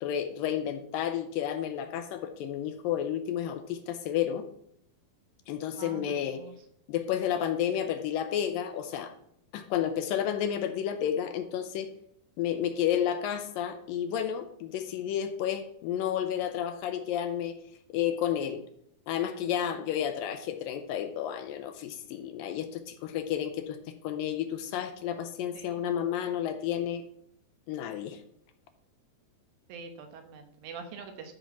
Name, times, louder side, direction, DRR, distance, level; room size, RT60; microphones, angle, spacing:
voice 1, 0.0-4.5 5.5-6.4 6.9-9.1 9.5-11.9 12.4-17.6 17.9-18.6 19.1-23.8 24.0-27.0 27.7-28.2, left 10 dB, 80° left, 8 dB, 2.3 m, -31 dB
voice 2, 5.8-6.5 25.5-25.9 29.7-31.3, right 5 dB, 75° right, 6 dB, 2.8 m, -45 dB
12.5 x 4.4 x 5.7 m, 0.69 s
omnidirectional pair, 4.3 m